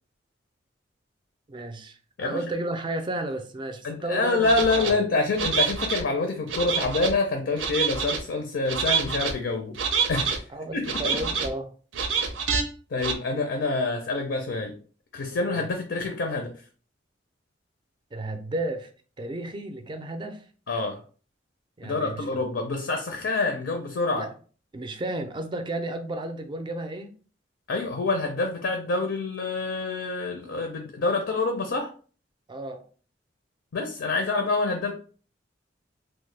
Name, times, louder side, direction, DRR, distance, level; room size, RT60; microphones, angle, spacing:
voice 1, 1.5-4.4 4.7-4.9 10.5-11.7 15.5-15.6 18.1-18.9 19.2-20.5 21.8-22.4 24.2-24.3 24.7-27.1 32.5-32.9, right 1 dB, 25° right, 0.4 m, -33 dB
voice 2, 3.8-9.8 10.1-10.4 10.7-10.8 12.9-14.7 15.1-16.5 20.7-21.0 21.8-24.3 27.7-31.9 33.7-34.9, left 3 dB, 75° left, 0.5 m, -26 dB
sound 1, 4.4-4.9 5.4-6.0 6.5-7.1 7.6-8.2 8.7-9.3 9.8-10.4 10.8-11.5 11.9-12.6 13.0-13.1, right 6 dB, 85° right, 0.5 m, -27 dB
3.0 x 2.1 x 3.2 m
head